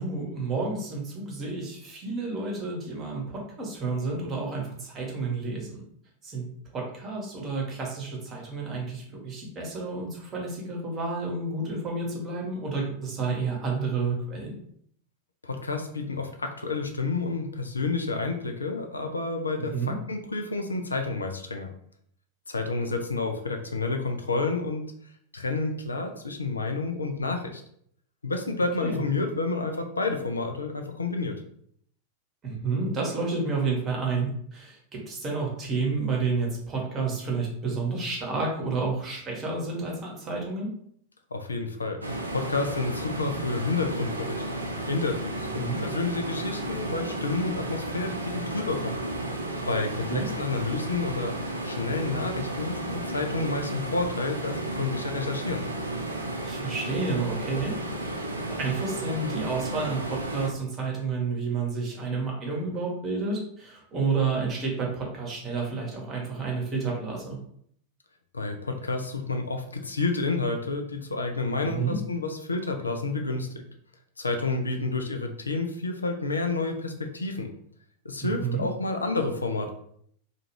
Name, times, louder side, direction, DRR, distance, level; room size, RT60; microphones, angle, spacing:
voice 1, 0.0-5.8 6.2-6.5 6.7-14.6 19.7-20.0 28.8-29.0 32.4-40.7 45.6-45.8 50.1-50.2 56.4-57.7 58.0-67.4 71.7-71.9 78.2-78.6, right 4 dB, 25° right, -1 dB, 0.9 m, -30 dB
voice 2, 15.4-21.7 22.5-24.8 25.3-27.6 28.2-31.4 41.3-42.0 42.3-44.4 44.9-49.0 49.7-51.4 51.6-55.6 68.3-73.5 74.2-77.5 78.0-79.7, left 3 dB, 75° left, 4 dB, 0.4 m, -30 dB
sound 1, 42.0-60.5, right 2 dB, 80° right, 0.4 m, -33 dB
2.4 x 2.3 x 3.1 m, 0.66 s
figure-of-eight pair, 90°, 0 cm